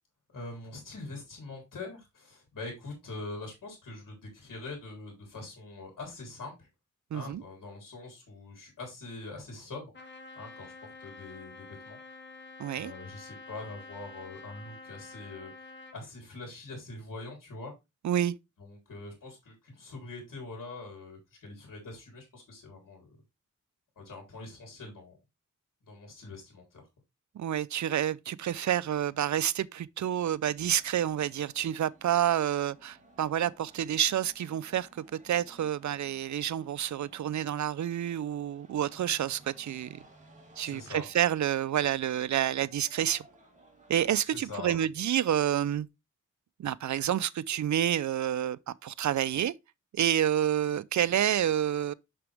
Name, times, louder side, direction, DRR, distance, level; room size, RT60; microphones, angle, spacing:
voice 1, 0.3-6.7 7.1-9.9 10.4-12.0 12.7-17.7 18.6-23.1 24.0-25.2 25.8-26.9 40.6-41.0 44.2-44.8, left 3 dB, 85° left, 3.6 m, -44 dB
voice 2, 7.1-7.4 12.6-12.9 18.0-18.4 27.4-34.9 35.2-40.0 40.6-43.2 43.9-45.9 46.6-49.5 49.9-51.9, right 10 dB, 65° right, 0.5 m, -29 dB
Trumpet, 9.9-16.0, left 3 dB, 35° left, 1.7 m, -48 dB
sound 1, 30.7-44.2, right 2 dB, 25° right, 2.5 m, -58 dB
6.7 x 6.1 x 3.3 m
wide cardioid pair, 95°, 31 cm